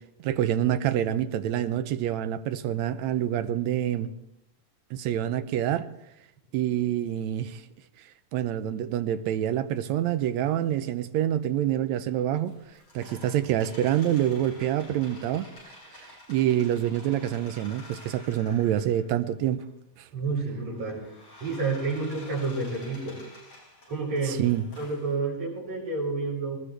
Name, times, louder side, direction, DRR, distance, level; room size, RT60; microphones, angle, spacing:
voice 1, 0.2-4.1 4.9-5.9 6.5-7.6 8.3-12.6 13.0-15.5 16.0-19.6 24.3-24.6, right 11 dB, 75° right, 11 dB, 2.0 m, -26 dB
sound 1, 12.4-19.2 19.6-19.7 20.4-25.2, left 2 dB, 50° left, 7.3 m, -49 dB
voice 2, 20.1-21.1 21.4-23.2 23.9-26.6, right 3 dB, 55° right, -5 dB, 7.8 m, -30 dB
20.0 x 19.5 x 3.4 m, 0.82 s
omnidirectional pair, 3.4 m